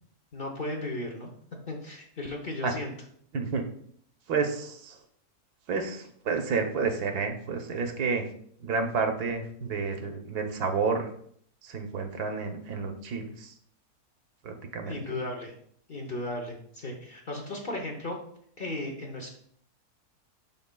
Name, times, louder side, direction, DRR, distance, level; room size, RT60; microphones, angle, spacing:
voice 1, 0.3-1.3 1.7-2.9 14.8-15.5 15.9-18.2 18.6-19.3, left 1 dB, 40° left, 1 dB, 0.9 m, -35 dB
voice 2, 3.3-3.6 4.3-5.0 5.7-8.3 8.6-11.1 11.6-13.5 14.4-15.0, right 5 dB, 75° right, 4 dB, 1.3 m, -30 dB
11.0 x 4.0 x 2.2 m, 0.63 s
omnidirectional pair, 1.7 m